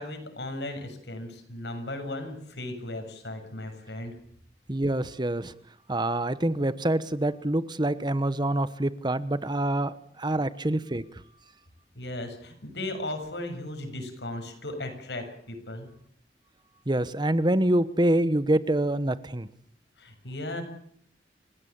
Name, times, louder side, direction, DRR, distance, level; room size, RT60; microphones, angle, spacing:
voice 1, 0.0-4.1 12.0-15.9 20.0-20.6, left 1 dB, 75° left, 6 dB, 7.3 m, -36 dB
voice 2, 4.7-5.5 5.9-11.0 16.9-19.5, right 1 dB, 25° right, 15 dB, 1.0 m, -26 dB
29.5 x 17.0 x 8.7 m, 0.66 s
head